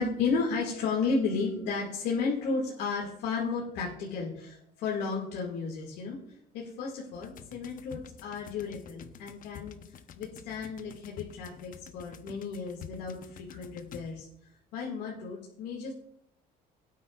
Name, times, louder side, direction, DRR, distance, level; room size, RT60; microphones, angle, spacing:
voice 1, 0.0-6.2 6.5-9.8 10.2-14.3 14.7-15.9, left 4 dB, 90° left, -3 dB, 2.1 m, -33 dB
sound 1, 7.1-14.4, left 8 dB, 55° left, 0.8 m, -49 dB
17.5 x 9.2 x 2.4 m, 0.74 s
cardioid pair, 110°, 17 cm